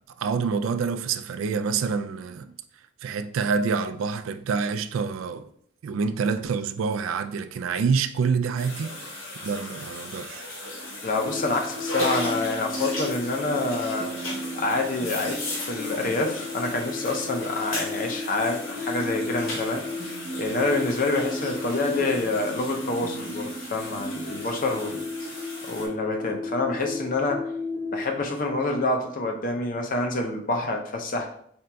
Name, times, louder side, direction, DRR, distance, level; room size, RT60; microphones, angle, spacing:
voice 1, 0.2-2.5 3.0-5.5 5.8-10.5, right 5 dB, 90° right, 0.3 m, -27 dB
sound 1, 8.6-25.9, left 1 dB, 90° left, 1.3 m, -37 dB
voice 2, 11.0-14.1 14.5-19.8 20.4-25.1 25.6-27.5 27.9-31.3, left 2 dB, 45° left, 0.6 m, -27 dB
sound 2, 11.1-28.1, left 2 dB, 65° right, 0.8 m, -34 dB
4.4 x 3.8 x 2.3 m
head